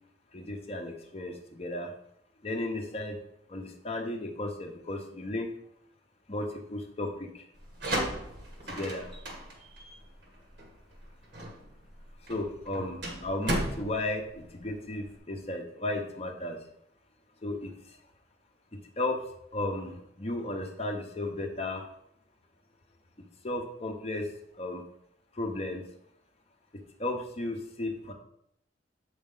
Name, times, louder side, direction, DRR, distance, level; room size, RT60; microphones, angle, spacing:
voice 1, 0.3-1.9 2.4-3.2 3.5-5.5 6.3-7.5 8.7-9.1 12.3-16.6 17.4-18.0 18.7-19.2 19.5-21.8 23.4-24.3 24.5-24.8 25.3-25.8 26.7-28.1, left 2 dB, 35° left, 3 dB, 0.8 m, -34 dB
sound 1, 7.6-15.1, right 1 dB, 75° right, 1.6 m, -36 dB
7.6 x 5.2 x 3.8 m, 0.74 s
head